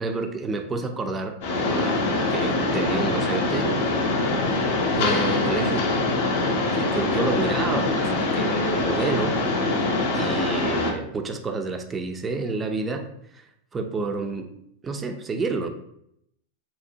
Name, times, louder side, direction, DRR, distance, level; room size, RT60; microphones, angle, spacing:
voice 1, 0.0-3.7 4.9-5.9 6.7-9.4 10.1-13.1 13.3-14.5 14.8-15.7, right 3 dB, 20° right, 6 dB, 0.3 m, -29 dB
Mechanisms, 1.4-10.9, left 2 dB, 65° left, 0.5 m, -24 dB
2.7 x 2.1 x 2.6 m, 0.75 s
hypercardioid pair, 100°, 0 cm